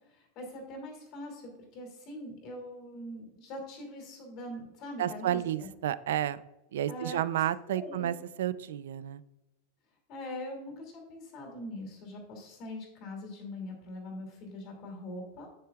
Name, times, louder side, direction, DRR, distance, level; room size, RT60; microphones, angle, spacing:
voice 1, 0.1-5.7 6.9-8.1 10.1-15.5, left 1 dB, 35° left, 2 dB, 2.5 m, -42 dB
voice 2, 5.0-6.4 6.7-9.2, right 11 dB, 90° right, 16 dB, 0.5 m, -31 dB
9.3 x 8.7 x 2.4 m, 0.96 s
supercardioid pair, 175°, 0 cm